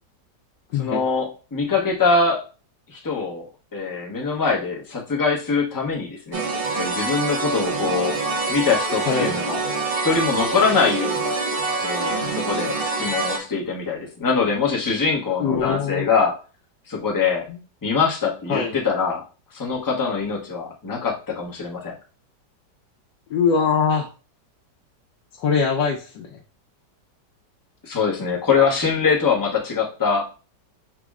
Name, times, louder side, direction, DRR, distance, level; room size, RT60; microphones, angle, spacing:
voice 1, 0.8-2.4 2.9-3.4 3.7-6.4 6.7-8.2 8.5-9.6 9.9-11.3 11.8-16.4 16.9-17.5 17.8-19.2 19.5-21.9 27.8-30.3, left 5 dB, 25° left, -2 dB, 0.4 m, -23 dB
sound 1, 6.3-13.4, right 3 dB, 55° right, 0.6 m, -25 dB
voice 2, 15.4-16.1 17.5-17.6 18.5-18.8 23.3-24.1 25.4-26.4, left 6 dB, 80° left, 0 dB, 1.3 m, -22 dB
5.8 x 2.1 x 3.5 m, 0.35 s
omnidirectional pair, 1.9 m